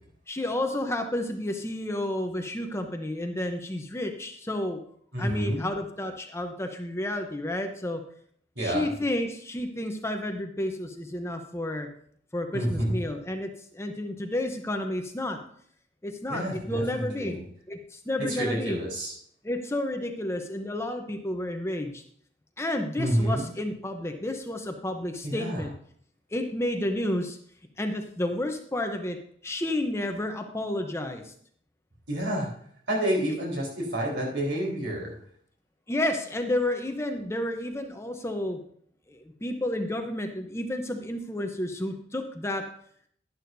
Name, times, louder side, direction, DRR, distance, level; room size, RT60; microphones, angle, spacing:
voice 1, 0.3-4.8 5.2-8.0 8.6-11.9 12.3-15.4 16.0-17.4 17.7-18.8 19.4-22.0 22.6-25.7 26.3-27.4 27.8-29.2 29.4-31.3 35.9-38.6 39.1-42.6, left 1 dB, 15° left, 5 dB, 0.7 m, -31 dB
voice 2, 5.1-5.6 8.6-8.9 12.5-13.0 16.3-17.4 18.3-19.1 23.0-23.4 25.2-25.6 32.1-32.5 32.9-35.1, right 1 dB, 70° right, -2 dB, 3.7 m, -28 dB
11.0 x 11.0 x 2.6 m, 0.62 s
head